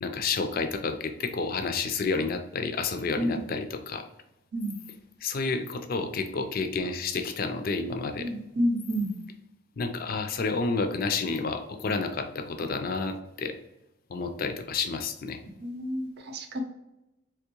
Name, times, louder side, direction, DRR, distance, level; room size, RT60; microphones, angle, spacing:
voice 1, 0.0-4.1 5.2-8.3 9.8-13.6 14.1-15.4, left 4 dB, 45° left, 7 dB, 0.4 m, -30 dB
voice 2, 8.2-9.1 15.6-16.6, equal, 50° right, 4 dB, 0.6 m, -29 dB
3.5 x 3.0 x 3.0 m, 0.92 s
head